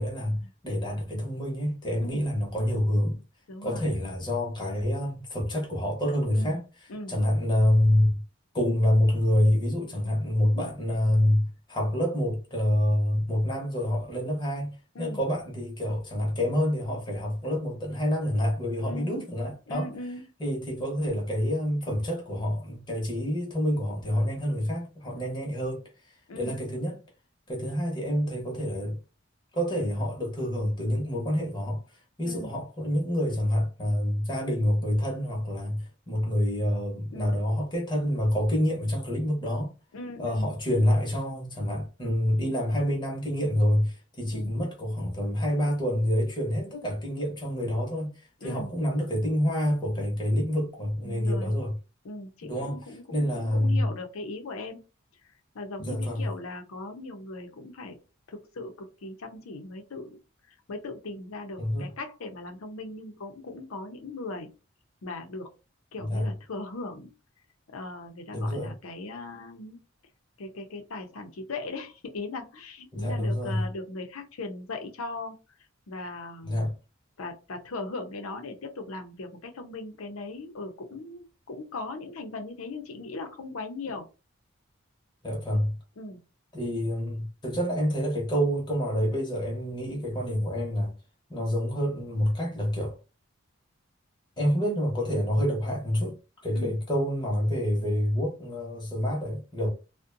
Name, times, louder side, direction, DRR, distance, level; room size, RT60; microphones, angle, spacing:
voice 1, 0.0-3.2 3.6-6.6 7.1-8.2 8.5-19.9 20.4-25.8 26.4-27.0 27.5-29.0 29.5-31.8 32.2-39.7 40.2-48.1 48.4-51.7 52.4-52.8 53.1-53.9 55.8-56.2 61.6-61.9 66.0-66.3 68.3-68.7 72.9-73.6 76.4-76.7 85.2-85.8 86.5-90.9 91.3-93.0 94.4-96.1 96.4-99.7, equal, 20° left, 0.9 m, -27 dB
voice 2, 3.5-3.9 6.3-6.6 6.9-7.2 14.9-15.2 18.9-19.2 19.7-20.2 26.3-26.6 32.2-32.5 37.1-37.4 39.9-40.5 44.3-44.5 48.4-48.7 51.0-51.5 52.0-54.8 55.5-58.0 58.3-60.2 60.7-64.5 65.0-65.5 65.9-67.1 67.7-69.8 70.4-75.4 75.9-76.6 77.2-84.1 86.0-86.2 96.5-96.7, left 2 dB, 90° left, 0.6 m, -39 dB
2.5 x 2.1 x 2.5 m
head